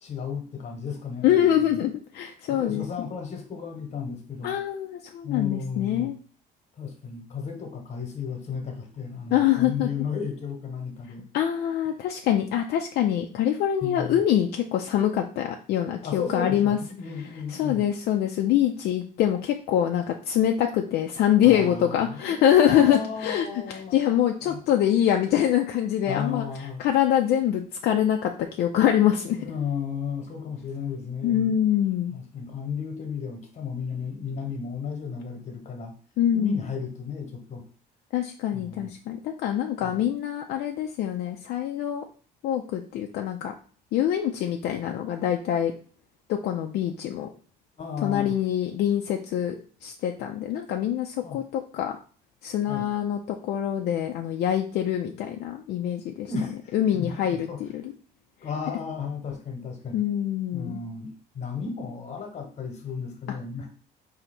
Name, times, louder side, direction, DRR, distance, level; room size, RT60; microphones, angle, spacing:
voice 1, 0.0-1.8 2.5-4.6 5.2-6.1 6.8-11.2 13.8-14.2 16.0-17.9 21.4-24.0 24.4-24.7 26.1-26.8 29.4-31.6 32.1-35.9 36.3-37.6 38.5-38.9 39.8-40.0 47.8-48.4 51.2-51.4 52.7-52.9 56.3-57.6 58.4-60.1 60.5-63.7, left 6 dB, 45° left, 4 dB, 1.2 m, -34 dB
voice 2, 1.2-3.1 4.4-6.1 9.3-9.9 11.3-16.8 17.5-26.4 26.8-28.3 28.6-29.4 31.2-32.2 36.2-36.6 38.1-42.0 42.4-43.5 43.9-45.7 46.3-47.3 48.0-49.6 49.8-52.0 52.4-56.3 56.7-57.8 59.9-60.8, left 10 dB, 70° left, 3 dB, 0.5 m, -24 dB
4.0 x 2.8 x 4.3 m, 0.41 s
cardioid pair, 110°, 17 cm